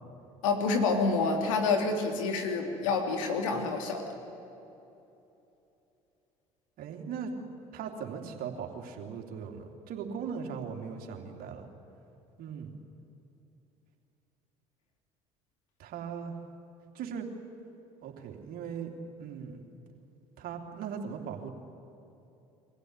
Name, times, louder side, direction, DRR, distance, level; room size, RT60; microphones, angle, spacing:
voice 1, 0.4-4.1, left 4 dB, 85° left, 3 dB, 2.9 m, -28 dB
voice 2, 6.8-7.3 7.7-11.7 12.4-12.7 15.8-16.3 16.9-17.2 18.0-18.9 19.2-19.6 20.4-21.5, right 7 dB, 60° right, 2 dB, 3.0 m, -39 dB
24.5 x 15.5 x 9.7 m, 2.9 s
hypercardioid pair, 70°, 16 cm